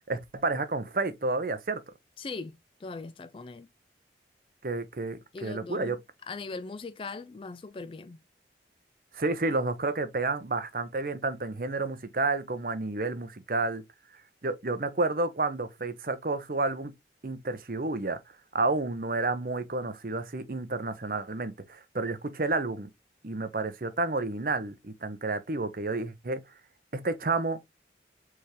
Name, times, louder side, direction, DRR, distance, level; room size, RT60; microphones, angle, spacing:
voice 1, 0.1-1.8 4.6-6.0 9.1-13.8 14.4-16.9 17.2-18.2 18.5-22.9 23.2-26.4 26.9-27.6, right 3 dB, 50° right, 0.7 m, -30 dB
voice 2, 2.2-3.7 5.3-6.0 6.3-8.2, left 3 dB, 30° left, 0.3 m, -40 dB
4.6 x 3.5 x 3.0 m
head